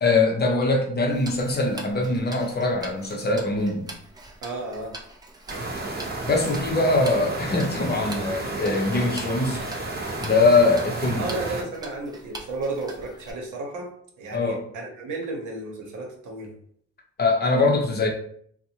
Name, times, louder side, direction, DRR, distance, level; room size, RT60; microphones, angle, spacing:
voice 1, 0.0-3.9 6.3-9.6 10.2-11.3 14.3-14.6 17.2-18.1, left 3 dB, 35° left, 2 dB, 0.6 m, -22 dB
Tick-tock, 1.1-13.3, right 1 dB, 15° right, 0.4 m, -43 dB
voice 2, 4.4-4.9 11.2-13.9 14.2-16.5, right 2 dB, 80° right, 0 dB, 0.9 m, -33 dB
sound 1, 5.5-11.6, right 2 dB, 35° right, 0.8 m, -32 dB
2.6 x 2.1 x 2.8 m, 0.63 s
cardioid pair, 90°, 30 cm